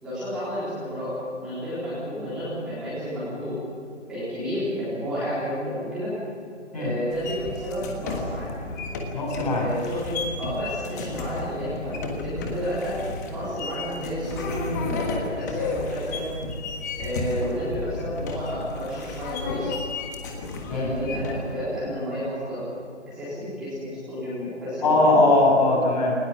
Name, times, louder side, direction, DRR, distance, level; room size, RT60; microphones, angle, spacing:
voice 1, 0.0-3.6 4.1-6.2 6.7-8.5 9.5-13.0 13.3-16.3 17.0-19.7 20.6-22.7 23.1-25.2, equal, ahead, -13 dB, 3.9 m, -31 dB
sound 1, 7.1-21.5, left 3 dB, 15° left, 1.5 m, -33 dB
voice 2, 9.1-9.7 20.7-20.9 24.8-26.2, left 2 dB, 30° left, -2 dB, 7.6 m, -20 dB
21.0 x 20.0 x 7.4 m, 2.5 s
figure-of-eight pair, 160°, 37 cm